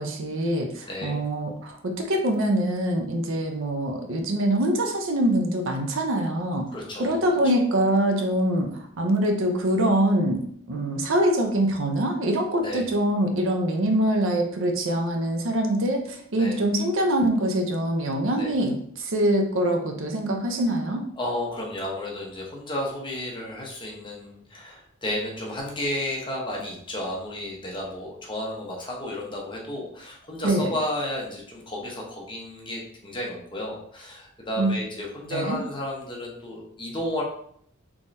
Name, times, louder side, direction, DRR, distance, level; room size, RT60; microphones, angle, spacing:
voice 1, 0.0-6.7 7.0-8.7 9.0-10.4 10.7-21.0 30.4-30.7 34.6-34.7 35.3-35.6, right 1 dB, 65° right, 4 dB, 0.6 m, -24 dB
voice 2, 0.9-1.2 6.7-7.4 12.6-12.9 16.3-16.6 18.4-18.5 21.2-37.2, left 1 dB, 25° left, -2 dB, 0.8 m, -32 dB
3.6 x 3.0 x 2.6 m, 0.65 s
head